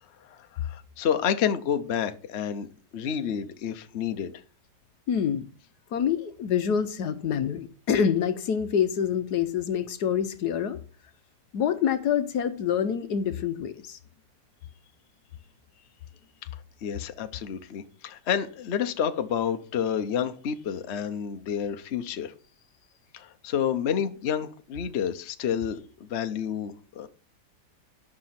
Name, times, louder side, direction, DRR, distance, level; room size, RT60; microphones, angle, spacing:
voice 1, 0.2-4.3 16.8-22.3 23.1-27.1, left 8 dB, 50° left, 0.9 m, -29 dB
voice 2, 5.1-5.5 5.9-10.8 11.5-14.0, left 8 dB, 65° left, 1.3 m, -26 dB
12.0 x 6.3 x 5.8 m
omnidirectional pair, 2.0 m